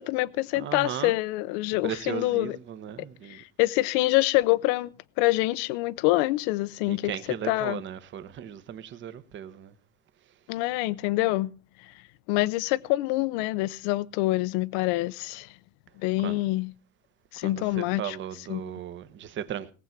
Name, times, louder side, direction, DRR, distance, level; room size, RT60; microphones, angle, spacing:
voice 1, 0.0-2.6 3.0-4.9 5.2-7.1 7.4-7.8 10.5-11.5 12.3-15.5 16.0-16.7 17.3-18.2 18.5-18.6, left 19 dB, 60° left, 0.8 m, -26 dB
voice 2, 0.5-1.2 1.8-3.4 6.9-9.7 16.2-16.4 17.4-19.7, right 10 dB, 30° right, 1.2 m, -36 dB
18.5 x 8.1 x 5.9 m
supercardioid pair, 150°, 38 cm